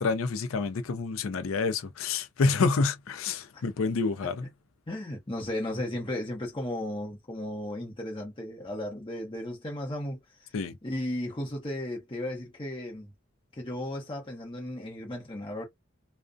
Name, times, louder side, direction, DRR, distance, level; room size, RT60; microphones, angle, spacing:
voice 1, 0.0-4.5 10.5-10.8, left 4 dB, 85° left, 0.5 m, -28 dB
voice 2, 4.9-10.2 10.8-13.1 13.5-15.7, left 1 dB, 25° left, 0.8 m, -35 dB
2.4 x 2.1 x 2.5 m
head